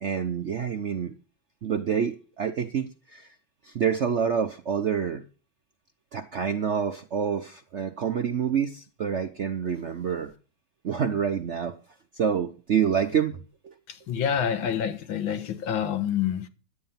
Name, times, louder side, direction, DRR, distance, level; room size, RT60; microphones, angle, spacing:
voice 1, 0.0-1.1 1.6-3.3 3.6-5.2 6.1-10.3 10.8-11.8 12.2-13.7, right 7 dB, 65° right, 0.7 m, -27 dB
voice 2, 13.9-16.5, left 8 dB, 85° left, 2.0 m, -27 dB
11.5 x 9.0 x 5.6 m
omnidirectional pair, 2.1 m